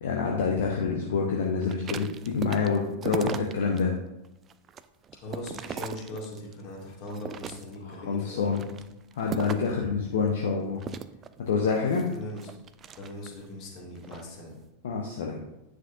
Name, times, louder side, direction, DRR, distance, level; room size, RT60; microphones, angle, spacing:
voice 1, 0.0-4.0 7.8-8.7 9.2-10.8 11.5-12.1 14.8-15.4, left 5 dB, 60° left, 0 dB, 0.9 m, -27 dB
sound 1, 1.6-3.8 4.2-6.6 7.1-7.9 8.4-9.8 10.8-13.5 13.9-14.3, right 8 dB, 25° right, 0.3 m, -38 dB
voice 2, 5.1-8.5 12.1-12.6 13.0-14.5, left 1 dB, 40° left, -3 dB, 2.4 m, -40 dB
9.5 x 6.2 x 2.6 m, 0.93 s
figure-of-eight pair, 90°, 0 cm